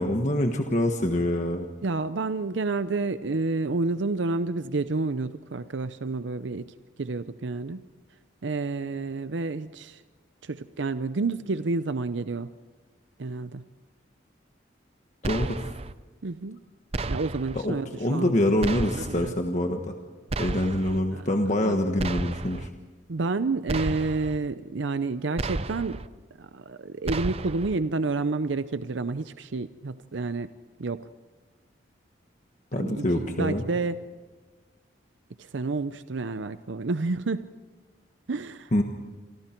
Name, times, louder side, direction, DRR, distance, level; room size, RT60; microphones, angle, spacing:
voice 1, 0.0-1.6 15.2-15.6 17.5-19.9 20.4-22.7 32.7-33.6 38.7-38.8, left 1 dB, 40° left, 4 dB, 1.4 m, -25 dB
voice 2, 1.8-6.7 7.0-7.8 8.4-10.0 10.4-12.5 13.2-13.6 16.2-16.6 17.1-18.3 18.6-18.7 19.0-19.3 21.1-21.2 21.6-21.8 23.1-26.0 26.4-30.5 30.8-31.1 32.8-34.0 35.5-37.4 38.3-38.7, right 3 dB, 80° right, 12 dB, 0.6 m, -29 dB
sound 1, 15.2-15.9 16.9-17.6 18.6-19.3 20.3-21.0 22.0-22.7 23.7-24.4 25.4-26.1 27.1-27.8, right 2 dB, 30° right, 0.6 m, -32 dB
29.0 x 24.0 x 4.5 m, 1.3 s
head